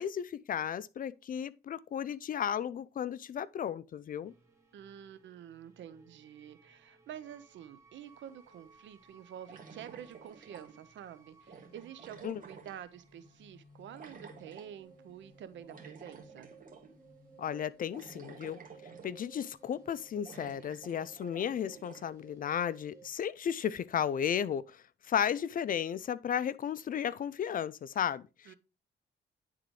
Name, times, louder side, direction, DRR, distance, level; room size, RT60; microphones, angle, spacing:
voice 1, 0.0-4.3 12.2-12.4 17.4-18.6 19.0-28.5, left 9 dB, 45° left, 0.4 m, -34 dB
sound 1, 4.2-23.1, right 4 dB, 15° right, 2.2 m, -59 dB
voice 2, 4.7-16.5 28.5-28.6, right 10 dB, 70° right, 0.7 m, -48 dB
sound 2, 8.1-8.2 9.5-11.0 11.5-13.2 13.9-14.7 15.7-17.0 17.3-17.4 17.9-19.4 19.8-19.9 20.3-22.1, right 5 dB, 45° right, 1.7 m, -52 dB
10.0 x 3.8 x 3.1 m
cardioid pair, 90°, 20 cm